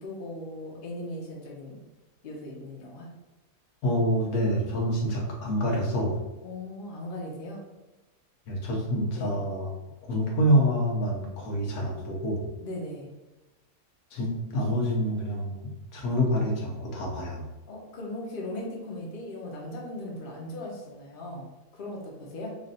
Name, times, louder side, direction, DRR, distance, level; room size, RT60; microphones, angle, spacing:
voice 1, 0.0-1.8 2.2-3.1 6.4-7.7 9.2-9.3 12.6-13.1 17.7-21.5 21.7-22.5, left 1 dB, 45° left, -2 dB, 0.9 m, -38 dB
voice 2, 3.8-6.2 8.5-9.7 10.1-12.5 14.1-17.5, equal, 80° left, -1 dB, 1.3 m, -27 dB
3.2 x 2.5 x 3.9 m, 1.1 s
omnidirectional pair, 1.5 m